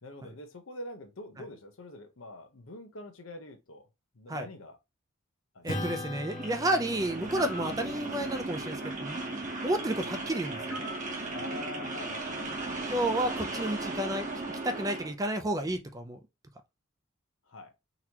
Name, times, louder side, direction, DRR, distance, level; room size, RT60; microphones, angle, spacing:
voice 1, 0.0-3.9 4.1-4.8 5.5-6.0 11.3-13.3 17.5-17.7, left 2 dB, 75° left, 0.9 m, -45 dB
voice 2, 5.6-9.2 9.6-10.9 12.8-14.3 14.6-16.2, right 1 dB, 15° right, 0.5 m, -31 dB
Acoustic guitar / Strum, 5.7-10.4, left 1 dB, 40° left, 1.2 m, -42 dB
sound 1, 6.3-15.1, right 2 dB, 40° right, 1.1 m, -36 dB
sound 2, 7.3-7.8 10.7-11.1, right 1 dB, 70° right, 1.6 m, -41 dB
4.0 x 2.8 x 2.9 m
head